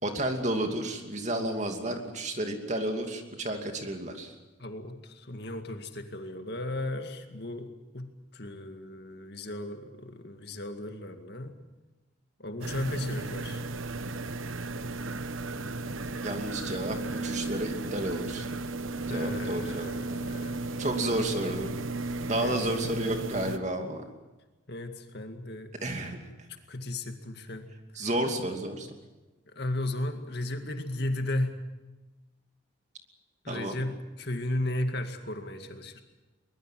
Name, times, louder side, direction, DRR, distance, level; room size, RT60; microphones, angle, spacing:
voice 1, 0.0-4.3 16.2-17.0 17.2-18.5 19.1-19.9 20.8-21.7 22.3-24.0 25.8-26.2 27.9-28.9 33.5-33.8, right 1 dB, 35° right, 4 dB, 2.7 m, -31 dB
voice 2, 4.6-11.6 12.4-13.6 19.1-20.6 22.3-22.6 24.7-25.7 26.7-27.7 29.5-31.6 33.4-36.0, left 1 dB, 55° left, 6 dB, 2.1 m, -35 dB
sound 1, 12.6-23.6, right 2 dB, 85° right, 1.1 m, -35 dB
23.5 x 21.0 x 7.7 m, 1.1 s
head